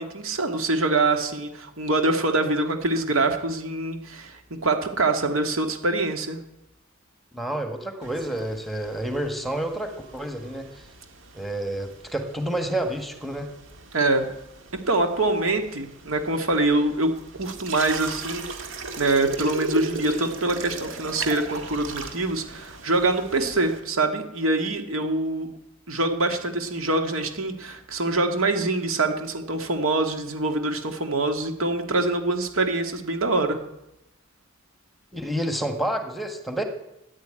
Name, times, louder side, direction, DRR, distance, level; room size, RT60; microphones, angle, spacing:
voice 1, 0.0-6.4 13.9-14.3 14.9-25.5 25.9-33.6, right 2 dB, 85° right, 5 dB, 2.1 m, -25 dB
voice 2, 7.3-10.8 11.3-13.5 35.1-36.6, right 1 dB, ahead, 5 dB, 1.7 m, -29 dB
sound 1, 8.0-23.8, right 3 dB, 65° right, 2.0 m, -38 dB
14.0 x 10.5 x 8.9 m, 0.86 s
head